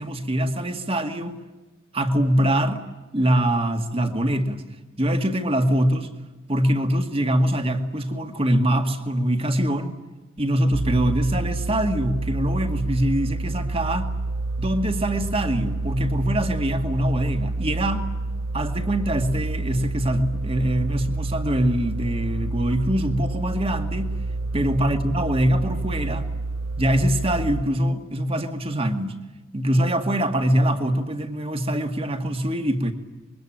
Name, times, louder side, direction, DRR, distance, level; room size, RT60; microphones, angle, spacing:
voice 1, 0.0-1.4 1.9-2.8 3.1-4.6 5.0-6.1 6.5-10.0 10.4-14.1 14.6-18.1 18.5-24.1 24.5-26.3 26.8-29.2 29.5-32.9, right 1 dB, 30° right, 7 dB, 2.1 m, -23 dB
sound 1, 10.7-27.6, right 2 dB, 85° right, 1.0 m, -28 dB
26.5 x 23.0 x 9.0 m, 1.2 s
head